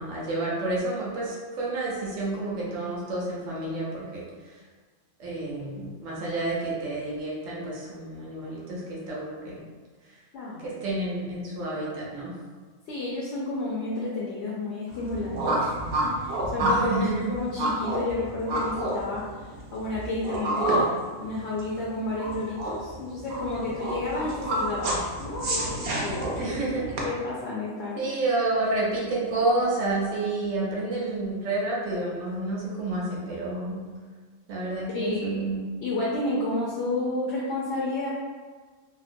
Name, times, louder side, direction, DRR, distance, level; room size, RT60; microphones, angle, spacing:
voice 1, 0.0-4.2 5.2-9.6 10.6-12.3 16.6-17.3 26.3-26.9 28.0-33.8 34.5-35.7, right 2 dB, 75° right, -5 dB, 1.0 m, -29 dB
voice 2, 10.3-10.7 12.9-15.6 16.0-26.6 26.9-28.1 34.9-35.4 35.8-38.1, left 2 dB, 65° left, -6 dB, 0.8 m, -31 dB
sound 1, 14.9-27.0, right 1 dB, 60° right, 0.7 m, -29 dB
2.8 x 2.1 x 2.5 m, 1.4 s
omnidirectional pair, 1.3 m